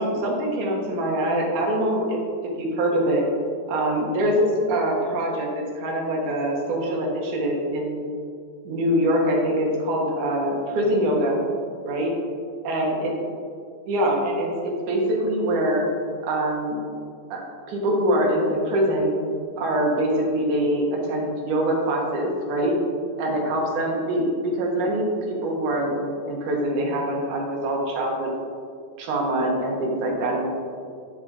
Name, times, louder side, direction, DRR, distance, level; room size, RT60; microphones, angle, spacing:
voice 1, 0.0-2.2 2.6-3.2 3.7-8.1 8.6-11.4 11.8-12.1 12.6-13.1 13.9-15.9 16.2-16.8 17.3-19.2 19.6-22.7 23.2-28.3 29.0-30.5, right 1 dB, 70° right, -1 dB, 2.7 m, -24 dB
10.5 x 6.2 x 4.0 m, 2.3 s
omnidirectional pair, 3.8 m